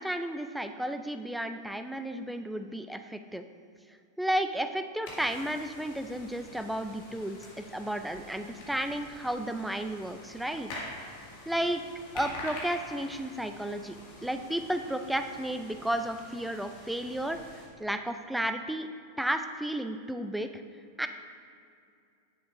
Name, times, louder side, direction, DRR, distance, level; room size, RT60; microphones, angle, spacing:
voice 1, 0.0-3.4 4.2-10.7 11.5-11.8 12.1-14.0 14.2-17.4 17.8-18.9 19.2-20.5 21.0-21.1, right 1 dB, 5° right, 8 dB, 0.4 m, -33 dB
sound 1, 5.1-17.7, left 2 dB, 45° left, 1.9 m, -46 dB
10.0 x 6.9 x 2.6 m, 2.4 s
figure-of-eight pair, 90°, 0 cm